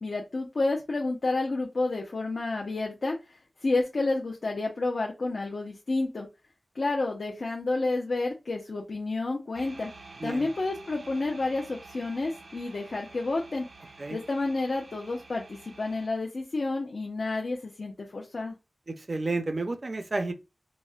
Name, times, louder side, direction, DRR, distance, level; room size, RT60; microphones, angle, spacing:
voice 1, 0.0-3.2 3.6-6.3 6.7-9.9 10.2-13.7 14.1-18.5, left 2 dB, 70° left, 0.6 m, -30 dB
sound 1, 9.5-16.1, right 3 dB, 85° right, 0.7 m, -49 dB
voice 2, 18.9-20.3, right 2 dB, 45° right, 0.5 m, -31 dB
4.1 x 2.1 x 2.3 m
wide cardioid pair, 75°, 0 cm